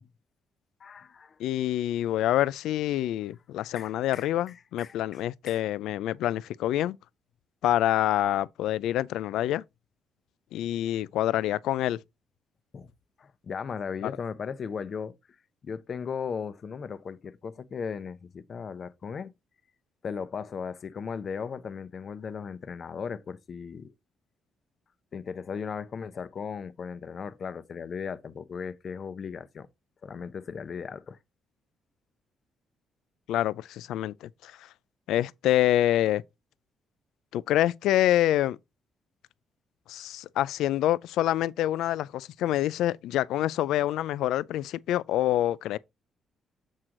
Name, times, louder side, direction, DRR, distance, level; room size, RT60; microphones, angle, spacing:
voice 1, 0.8-1.4 3.8-4.3 4.8-5.2 5.5-5.6 12.7-12.9 13.2-15.1 15.6-19.3 20.0-23.9 25.1-29.7 30.0-31.2, left 6 dB, 50° left, 0.7 m, -37 dB
voice 2, 1.4-7.0 7.6-9.6 10.5-12.0 14.0-14.1 33.3-34.7 35.1-36.2 37.3-38.6 39.9-45.8, left 13 dB, 85° left, 0.3 m, -26 dB
7.5 x 4.5 x 3.8 m
cardioid pair, 90°, 0 cm